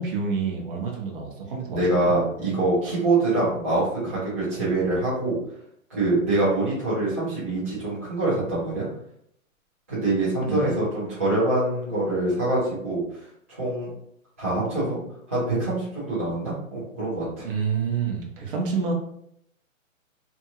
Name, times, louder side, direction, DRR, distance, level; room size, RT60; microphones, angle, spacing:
voice 1, 0.0-2.1 10.5-10.8 17.4-18.9, right 5 dB, 40° right, 0 dB, 0.7 m, -28 dB
voice 2, 1.7-5.4 5.9-8.8 9.9-13.0 13.5-13.9 14.4-15.0 15.3-17.5, right 2 dB, 10° right, -13 dB, 0.4 m, -24 dB
2.8 x 2.6 x 2.3 m, 0.71 s
hypercardioid pair, 145°, 41 cm